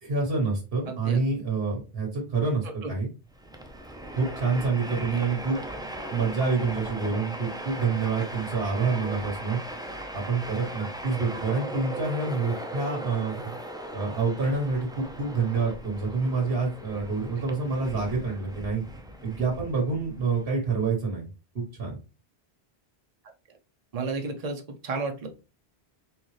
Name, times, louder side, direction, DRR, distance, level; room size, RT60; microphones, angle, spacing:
voice 1, 0.0-3.1 4.2-5.6 6.1-9.6 10.1-13.3 13.9-18.8 19.2-21.3 21.5-22.0, right 4 dB, 65° right, -1 dB, 1.5 m, -27 dB
voice 2, 0.9-1.2 2.8-2.9 4.9-5.2 9.0-9.2 23.9-25.3, right 3 dB, 40° right, 5 dB, 0.8 m, -33 dB
Train, 3.3-20.9, right 1 dB, 5° right, 0.4 m, -38 dB
4.3 x 3.7 x 3.2 m, 0.31 s
omnidirectional pair, 1.1 m